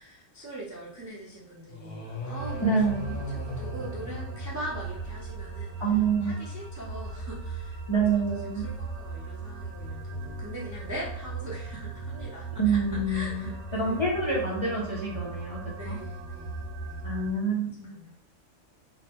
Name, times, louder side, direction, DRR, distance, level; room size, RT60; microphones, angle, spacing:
voice 1, 0.0-5.9 6.2-7.8 8.1-12.8 13.1-13.8 15.7-17.1 17.9-18.1, right 1 dB, 30° right, -5 dB, 0.3 m, -42 dB
sound 1, 1.7-5.0, equal, 85° left, 1.2 m, -38 dB
sound 2, 2.4-17.3, right 3 dB, 75° right, 1.1 m, -38 dB
voice 2, 2.6-3.1 5.8-6.3 7.9-8.7 12.6-16.0 17.0-17.9, right 4 dB, 40° left, -5 dB, 0.4 m, -27 dB
3.8 x 2.0 x 2.9 m, 0.67 s
omnidirectional pair, 1.3 m